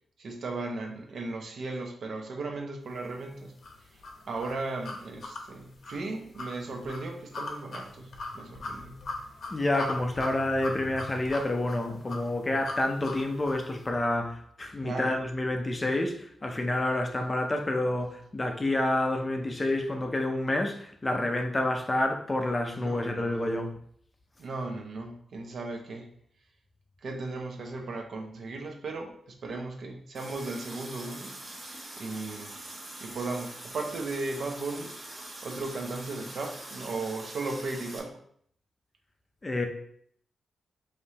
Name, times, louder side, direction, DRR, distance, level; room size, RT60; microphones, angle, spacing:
voice 1, 0.2-3.5 4.3-9.0 14.8-15.1 22.8-23.5 24.4-26.1 27.0-31.3 31.7-32.7 33.0-38.2, right 3 dB, 55° right, 3 dB, 0.7 m, -36 dB
sound 1, 3.6-13.7, left 2 dB, 55° left, 0.8 m, -40 dB
voice 2, 9.5-16.2 16.4-23.7 39.4-39.7, left 1 dB, 20° left, 3 dB, 0.5 m, -28 dB
Water tap faucet, 30.1-38.0, right 1 dB, 35° right, 1.1 m, -43 dB
5.2 x 3.2 x 2.8 m, 0.65 s
wide cardioid pair, 150°, 0 cm